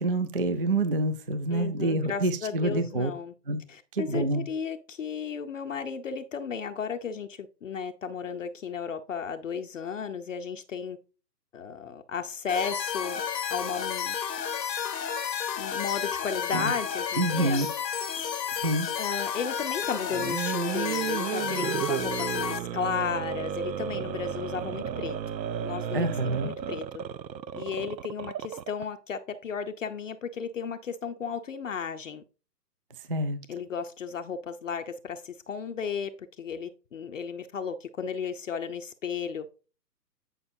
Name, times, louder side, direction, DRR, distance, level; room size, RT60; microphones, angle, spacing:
voice 1, 0.0-3.1 3.5-3.6 3.9-4.5 16.5-16.7 17.2-17.7 18.5-18.9 25.9-26.5 33.1-33.4, right 2 dB, 40° right, 0.4 m, -27 dB
voice 2, 1.5-3.3 3.7-11.0 11.5-13.2 13.5-14.2 15.6-17.6 19.0-25.2 25.6-26.8 27.5-32.2 33.5-36.1 36.4-39.7, left 6 dB, 50° left, 0.6 m, -34 dB
sound 1, 12.5-22.6, left 8 dB, 75° left, 0.8 m, -31 dB
sound 2, 20.1-28.8, right 9 dB, 85° right, 0.6 m, -33 dB
8.9 x 5.4 x 2.6 m
figure-of-eight pair, 140°, 50 cm